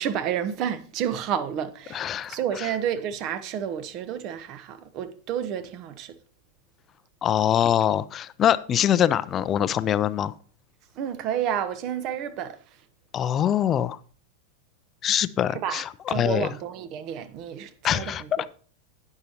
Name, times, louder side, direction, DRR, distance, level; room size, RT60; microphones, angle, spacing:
voice 1, 0.0-6.2 11.0-12.6 15.5-18.5, right 9 dB, 40° right, 1.0 m, -30 dB
voice 2, 1.9-2.7 7.2-10.3 13.1-14.0 15.0-16.5 17.8-18.5, left 10 dB, 25° left, 0.5 m, -24 dB
17.0 x 6.7 x 3.0 m
figure-of-eight pair, 90°, 0 cm